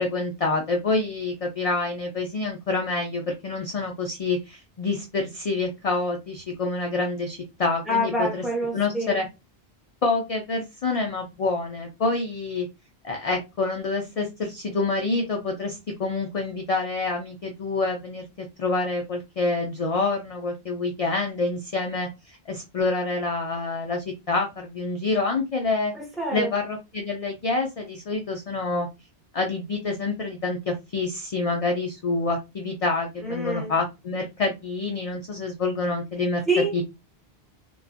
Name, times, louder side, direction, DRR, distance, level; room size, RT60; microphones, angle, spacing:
voice 1, 0.0-8.4 8.7-9.3 10.0-12.7 13.0-25.9 26.3-28.9 29.3-36.4 36.7-36.8, left 3 dB, 55° left, 0.4 m, -27 dB
voice 2, 7.9-9.2 25.9-26.5 33.2-33.7 36.5-36.8, equal, ahead, 1.0 m, -26 dB
2.5 x 2.3 x 2.4 m
omnidirectional pair, 1.1 m